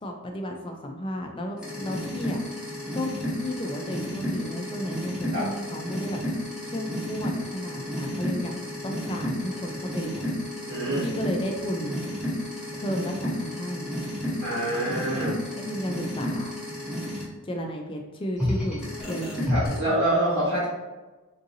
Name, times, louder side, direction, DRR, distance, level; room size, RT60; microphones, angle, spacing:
voice 1, 0.0-2.4 2.9-3.1 3.4-6.2 6.6-10.4 11.0-12.1 12.7-14.1 15.6-16.5 17.4-19.9, equal, 25° left, 3 dB, 0.3 m, -33 dB
sound 1, 1.6-17.2 18.4-19.8, left 1 dB, 5° right, 0.8 m, -32 dB
voice 2, 10.7-11.0 14.4-15.3 19.5-20.7, right 1 dB, 65° right, -12 dB, 1.3 m, -26 dB
3.7 x 2.7 x 2.6 m, 1.2 s
head